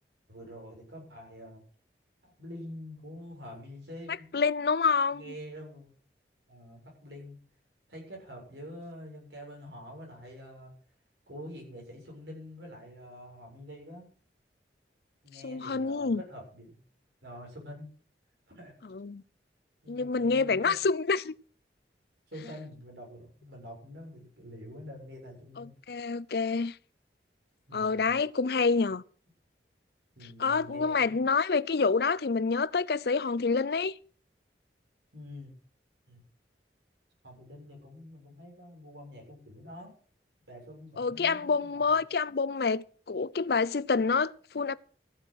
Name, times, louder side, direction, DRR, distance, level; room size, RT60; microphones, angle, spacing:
voice 1, 0.3-1.6 2.2-4.3 5.1-5.9 6.5-7.4 7.9-10.7 11.3-14.1 15.2-16.8 17.2-17.9 18.5-18.8 19.8-20.8 22.3-25.7 27.7-28.1 30.2-31.2 35.1-35.5 36.1-36.2 37.2-40.0 40.4-41.9, equal, 80° right, 7.1 m, -46 dB
voice 2, 4.3-5.3 15.4-16.2 18.8-19.2 19.9-21.3 25.6-26.8 27.7-29.0 30.4-33.9 41.0-44.7, left 4 dB, 60° left, 0.5 m, -27 dB
14.5 x 7.8 x 6.3 m
head